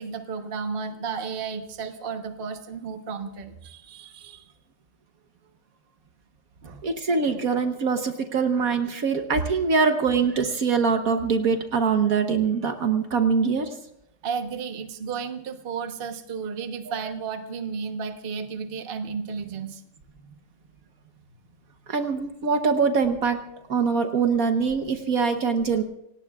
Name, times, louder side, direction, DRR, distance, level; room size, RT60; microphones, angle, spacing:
voice 1, 0.0-4.5 6.6-6.8 14.2-19.8 20.2-20.4, right 5 dB, 35° right, 6 dB, 1.2 m, -33 dB
voice 2, 6.8-13.7 16.9-17.0 21.9-23.4 23.7-25.8, right 5 dB, 60° right, 6 dB, 1.4 m, -23 dB
27.5 x 17.5 x 2.4 m, 0.80 s
omnidirectional pair, 1.8 m